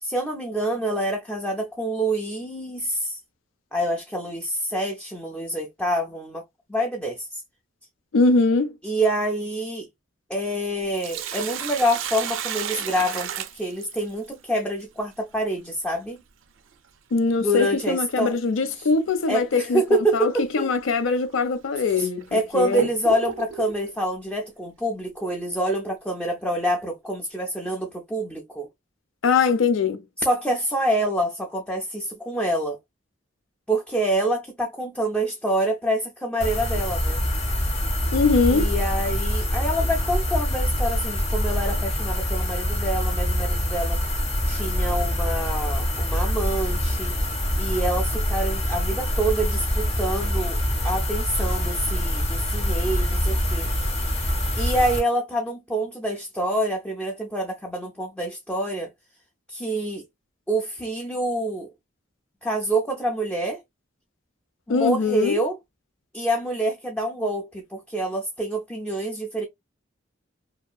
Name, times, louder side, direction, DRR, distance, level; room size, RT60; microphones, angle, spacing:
voice 1, 0.0-3.2 3.7-6.4 6.7-7.4 8.8-9.9 10.3-16.2 17.4-18.4 18.7-18.9 19.3-20.7 21.9-28.7 30.2-32.8 33.7-37.2 38.5-44.0 44.4-47.2 47.6-50.6 50.8-53.7 54.6-58.9 59.5-60.0 60.5-61.7 62.4-63.6 64.7-65.6 66.1-69.4, right 1 dB, 5° left, 0.3 m, -26 dB
voice 2, 8.1-8.7 17.1-19.8 20.1-22.9 29.2-30.0 38.1-38.7 64.7-65.4, left 4 dB, 80° left, 0.5 m, -22 dB
Sink (filling or washing), 10.7-14.3 16.7-16.8 18.7-18.9 19.4-19.5 20.3-20.4 21.1-21.2 21.9-23.8, right 8 dB, 80° right, 0.4 m, -32 dB
Gas Oven, 36.4-55.0, equal, 30° left, 0.7 m, -25 dB
2.7 x 2.3 x 2.3 m
head